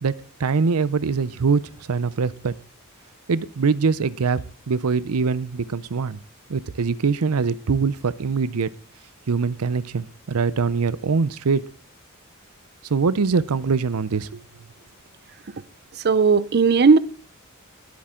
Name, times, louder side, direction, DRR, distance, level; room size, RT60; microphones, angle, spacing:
voice 1, 0.0-2.5 3.3-6.2 6.5-8.7 9.3-11.6 12.9-14.4, right 5 dB, 90° right, 0.6 m, -23 dB
voice 2, 16.0-17.0, right 5 dB, 50° right, 0.6 m, -16 dB
20.0 x 8.7 x 3.7 m
head